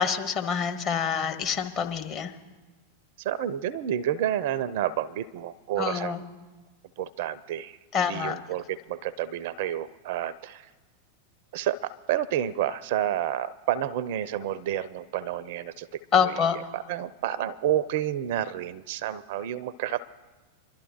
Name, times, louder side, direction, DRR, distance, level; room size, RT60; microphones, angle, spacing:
voice 1, 0.0-2.3 5.8-6.2 7.9-8.4 16.1-16.6, left 7 dB, 35° left, 5 dB, 1.2 m, -26 dB
voice 2, 3.2-6.2 7.0-10.7 11.5-20.1, right 11 dB, 50° right, 19 dB, 0.4 m, -30 dB
25.5 x 12.0 x 2.9 m, 1.2 s
figure-of-eight pair, 90°, 0 cm